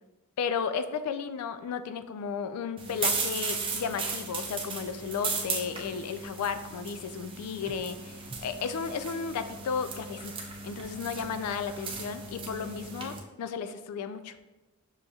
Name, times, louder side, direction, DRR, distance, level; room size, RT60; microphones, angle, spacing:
voice 1, 0.4-14.4, left 6 dB, 80° left, 11 dB, 0.3 m, -34 dB
sound 1, 2.8-13.2, right 4 dB, 25° right, 0.4 m, -36 dB
6.1 x 2.7 x 2.3 m, 1.1 s
head